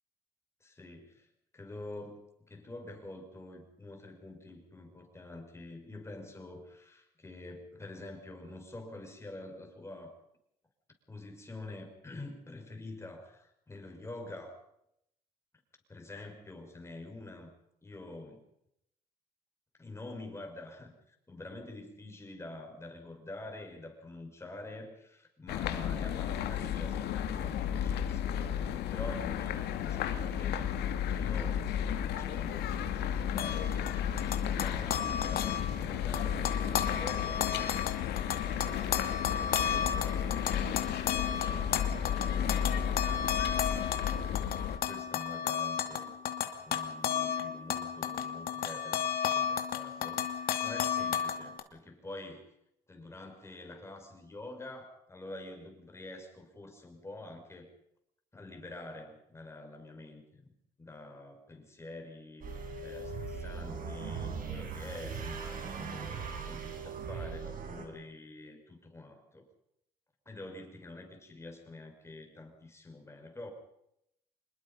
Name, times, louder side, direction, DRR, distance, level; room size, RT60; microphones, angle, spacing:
voice 1, 0.6-1.3 1.5-10.2 11.1-14.6 15.9-17.5 17.8-18.4 19.8-28.6 28.9-30.6 31.1-31.7 32.2-33.8 34.2-43.9 44.6-46.1 46.6-52.5 52.9-57.7 58.3-60.5 60.8-69.4 70.3-73.5, left 2 dB, 15° left, 4 dB, 5.9 m, -47 dB
sound 1, 25.5-44.8, left 9 dB, 75° left, 2.4 m, -33 dB
sound 2, 33.4-35.9 36.1-51.6, left 8 dB, 60° left, 2.6 m, -33 dB
sound 3, 62.4-67.9, right 5 dB, 55° right, 5.0 m, -39 dB
26.0 x 21.5 x 5.6 m, 0.78 s
cardioid pair, 110°, 17 cm